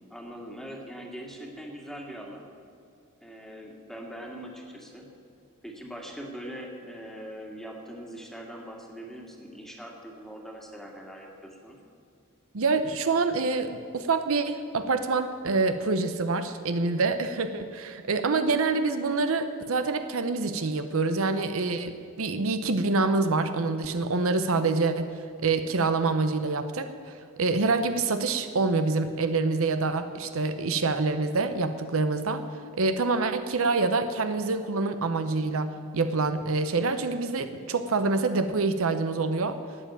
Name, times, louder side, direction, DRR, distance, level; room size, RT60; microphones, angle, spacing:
voice 1, 0.1-2.5 3.2-5.1 5.6-11.8, equal, ahead, 0 dB, 2.0 m, -42 dB
voice 2, 12.5-25.1 25.4-26.9 27.4-32.4 32.8-39.6, right 3 dB, 70° right, 9 dB, 0.8 m, -26 dB
12.0 x 9.2 x 8.7 m, 2.4 s
head